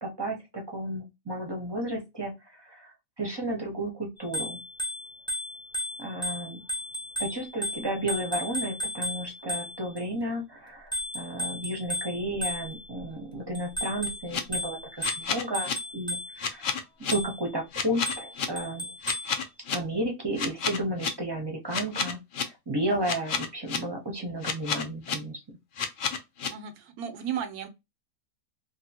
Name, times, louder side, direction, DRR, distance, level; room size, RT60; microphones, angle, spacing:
voice 1, 0.0-2.9 3.2-4.6 6.0-6.6 7.2-16.7 17.1-18.9 19.7-22.2 22.4-25.4, right 1 dB, 25° right, 0.6 m, -33 dB
Bicycle bell, 4.2-10.0 10.9-13.0 13.5-16.5 17.1-17.5 18.1-19.4, left 1 dB, 10° left, 0.3 m, -35 dB
sound 1, 14.1-14.4 15.0-15.7 16.4-17.1 17.7-18.5 19.0-19.7 20.4-21.1 21.7-22.4 23.0-23.8 24.4-25.1 25.8-26.5, left 6 dB, 85° left, 0.4 m, -29 dB
voice 2, 26.5-27.7, right 9 dB, 80° right, 1.2 m, -34 dB
2.8 x 2.6 x 2.7 m
omnidirectional pair, 1.6 m